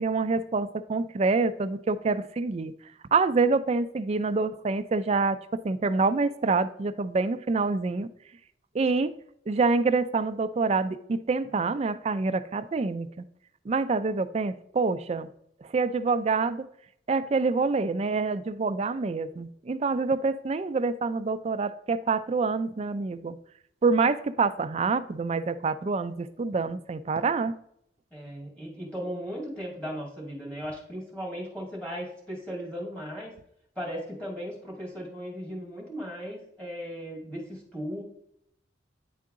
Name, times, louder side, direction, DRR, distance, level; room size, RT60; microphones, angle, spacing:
voice 1, 0.0-2.7 3.1-8.1 8.7-9.1 9.5-13.3 13.7-15.3 15.6-16.7 17.1-23.4 23.8-27.5, right 4 dB, 35° right, 12 dB, 0.4 m, -26 dB
voice 2, 28.1-33.3 33.8-38.0, equal, 5° left, -3 dB, 2.3 m, -37 dB
9.5 x 3.8 x 3.6 m, 0.72 s
head